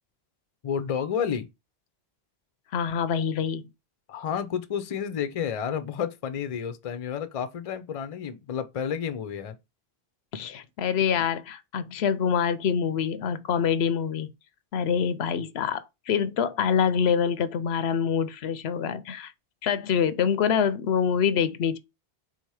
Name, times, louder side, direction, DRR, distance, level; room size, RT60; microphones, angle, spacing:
voice 1, 0.6-1.5 4.1-9.6, left 7 dB, 45° left, 0.5 m, -30 dB
voice 2, 2.7-3.7 10.3-14.3 14.7-19.3 19.6-21.8, left 7 dB, 80° left, 0.8 m, -25 dB
3.9 x 2.8 x 4.7 m
omnidirectional pair, 1.0 m